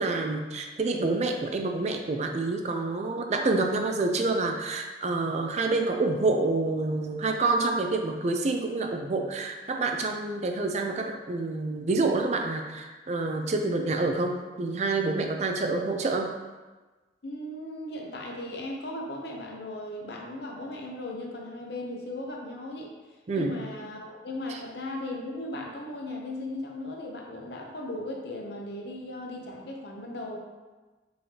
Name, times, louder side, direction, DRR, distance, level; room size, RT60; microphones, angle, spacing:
voice 1, 0.0-16.3 23.3-23.6 24.5-24.6, right 3 dB, 35° right, 3 dB, 0.4 m, -27 dB
voice 2, 17.2-22.9 23.3-30.4, left 1 dB, 60° left, 0 dB, 0.7 m, -37 dB
5.4 x 3.3 x 2.8 m, 1.3 s
head